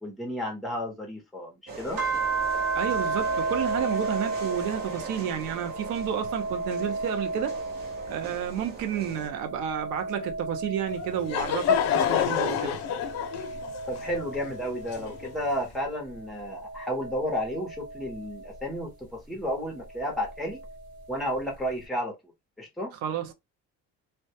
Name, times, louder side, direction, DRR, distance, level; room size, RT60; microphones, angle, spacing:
voice 1, 0.0-2.0 13.9-20.6 21.1-22.2 22.6-22.9, equal, ahead, 0.6 m, -32 dB
sound 1, 1.7-9.3, right 3 dB, 35° right, 0.7 m, -41 dB
sound 2, 2.0-8.7 9.1-12.0 12.6-15.4 16.1-18.6 19.9-21.0, right 3 dB, 55° right, 1.1 m, -33 dB
voice 2, 2.7-7.6 8.1-12.8 23.0-23.3, right 9 dB, 85° right, 0.7 m, -31 dB
Laughter / Crowd, 10.9-15.6, left 8 dB, 60° left, 0.5 m, -28 dB
2.2 x 2.1 x 2.7 m
cardioid pair, 170°, 29 cm